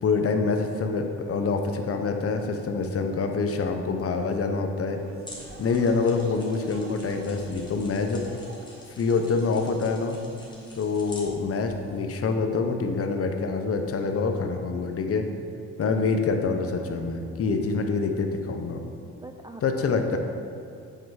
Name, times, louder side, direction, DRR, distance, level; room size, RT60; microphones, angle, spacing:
voice 1, 0.0-5.0 5.6-8.2 9.0-10.2 10.7-15.3 15.8-18.8 19.6-20.2, left 4 dB, 50° left, 5 dB, 0.8 m, -26 dB
sound 1, 4.9-9.1, right 2 dB, 45° right, 1.2 m, -47 dB
sound 2, 5.2-12.0, left 1 dB, 15° left, 1.9 m, -47 dB
voice 2, 10.5-10.8 19.0-19.6 20.0-20.2, right 2 dB, 15° right, 5 dB, 0.3 m, -44 dB
8.8 x 4.5 x 4.8 m, 2.4 s
cardioid pair, 90°, 30 cm